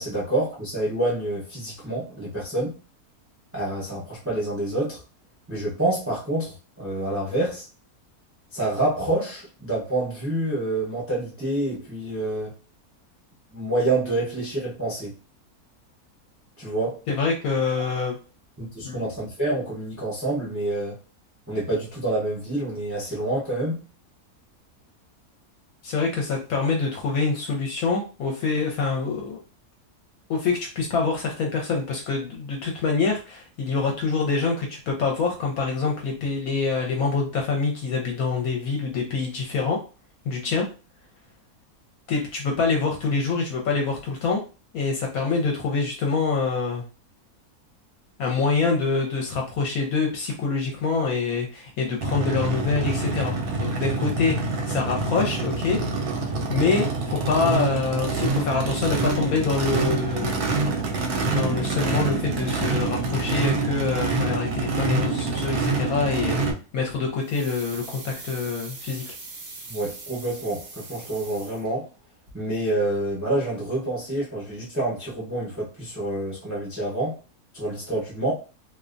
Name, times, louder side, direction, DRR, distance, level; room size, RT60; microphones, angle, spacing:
voice 1, 0.0-2.7 3.5-5.0 5.5-7.7 8.5-12.5 13.5-15.1 16.6-17.0 18.6-21.0 21.5-23.8 69.7-71.9 72.3-77.2 77.5-78.3, right 2 dB, 15° right, 0.6 m, -27 dB
voice 2, 17.1-18.2 18.8-19.0 25.8-29.4 30.3-39.8 40.3-40.7 42.1-44.4 44.7-46.9 48.2-55.8 56.5-60.4 61.3-66.4 66.7-69.1, left 4 dB, 75° left, 1.0 m, -25 dB
Race car auto racing / Idling / Accelerating revving vroom, 52.0-66.5, right 3 dB, 85° right, 1.1 m, -26 dB
sound 1, 67.2-72.0 72.3-72.4, right 3 dB, 50° right, 0.7 m, -41 dB
2.6 x 2.1 x 2.5 m
omnidirectional pair, 1.6 m